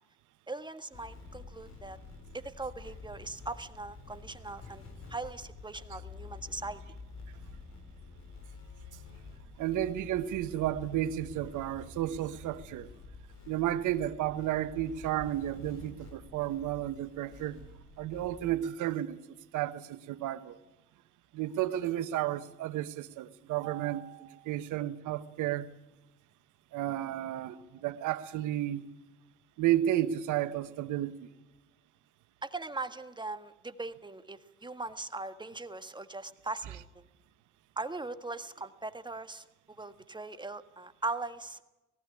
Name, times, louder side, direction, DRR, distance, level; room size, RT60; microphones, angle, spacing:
voice 1, 0.5-2.0 2.3-4.8 5.1-6.8 32.4-37.1 37.8-39.4 39.8-41.6, right 3 dB, 15° right, 1.6 m, -40 dB
sound 1, 0.9-18.6, left 4 dB, 55° left, 4.3 m, -49 dB
voice 2, 9.6-12.9 13.5-17.6 18.0-19.2 19.5-20.6 21.3-25.7 26.7-28.8 29.6-31.3, right 12 dB, 75° right, 1.2 m, -32 dB
18.0 x 15.5 x 9.8 m
supercardioid pair, 70°, 31 cm